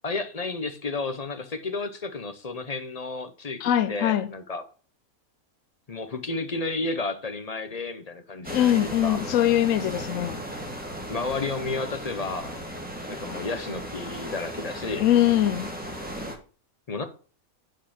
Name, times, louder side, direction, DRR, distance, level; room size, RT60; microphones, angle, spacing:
voice 1, 0.0-3.6 3.9-4.6 5.9-9.2 11.1-12.5 13.1-15.1 16.9-17.0, left 3 dB, 35° left, 0.6 m, -32 dB
voice 2, 3.6-4.3 8.5-10.4 15.0-15.7, left 12 dB, 70° left, 1.0 m, -22 dB
sound 1, 8.4-16.3, equal, 5° right, 1.6 m, -36 dB
7.8 x 5.2 x 4.2 m
omnidirectional pair, 1.5 m